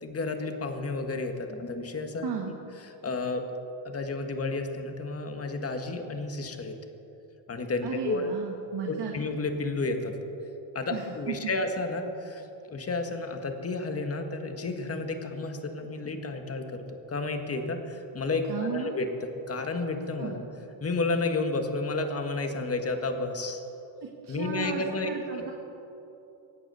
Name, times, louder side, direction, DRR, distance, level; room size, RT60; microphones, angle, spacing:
voice 1, 0.0-2.3 2.8-3.5 3.9-6.8 7.5-8.3 8.9-10.2 10.8-19.1 19.5-20.4 20.8-23.6 24.3-25.5, left 3 dB, 30° left, 5 dB, 1.7 m, -31 dB
voice 2, 2.2-2.5 7.8-9.1 10.9-11.5 18.5-19.0 20.2-20.4 24.2-25.5, right 7 dB, 55° right, 0 dB, 1.9 m, -34 dB
24.0 x 8.7 x 6.9 m, 3.0 s
cardioid pair, 110°, 47 cm